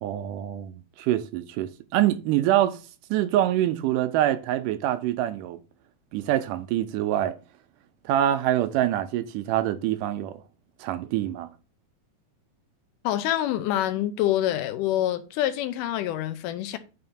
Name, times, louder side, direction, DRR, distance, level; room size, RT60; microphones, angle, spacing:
voice 1, 0.0-2.8 3.1-5.6 6.1-7.4 8.1-10.4 10.8-11.5, right 12 dB, 85° right, 2.2 m, -25 dB
voice 2, 13.0-16.8, left 12 dB, 85° left, 2.2 m, -26 dB
8.9 x 3.5 x 4.3 m
omnidirectional pair, 3.7 m